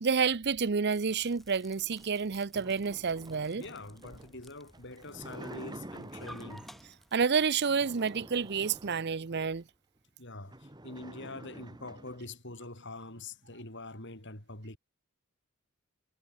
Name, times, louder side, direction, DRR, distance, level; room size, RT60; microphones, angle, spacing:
voice 1, 0.0-3.6 7.1-9.6, right 5 dB, 50° right, 0.6 m, -29 dB
sound 1, 0.9-8.9, equal, ahead, 3.6 m, -57 dB
sound 2, 1.8-7.0 7.6-9.6 10.1-10.2 10.4-12.3, right 1 dB, 20° right, 1.8 m, -49 dB
voice 2, 3.6-6.7 10.2-14.8, left 2 dB, 55° left, 7.2 m, -44 dB
head